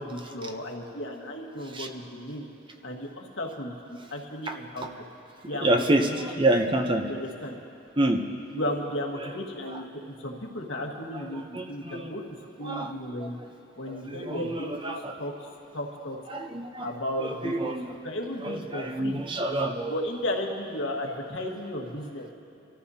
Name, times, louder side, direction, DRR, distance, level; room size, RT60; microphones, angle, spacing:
voice 1, 0.0-2.5 2.8-4.9 5.5-5.8 6.1-6.2 7.1-7.6 8.5-9.8 10.2-11.4 11.7-12.2 12.6-13.4 13.8-15.3 15.7-16.2 16.8-17.8 18.0-19.2 19.9-22.3, left 1 dB, 70° left, 0 dB, 1.7 m, -34 dB
voice 2, 5.6-7.1 8.0-8.2 8.5-8.6 9.2-9.3 9.7-9.8 11.1-12.1 12.6-13.5 13.8-15.2 16.3-18.0 18.4-20.0, right 1 dB, 25° right, 4 dB, 0.7 m, -28 dB
25.5 x 14.0 x 2.8 m, 2.6 s
head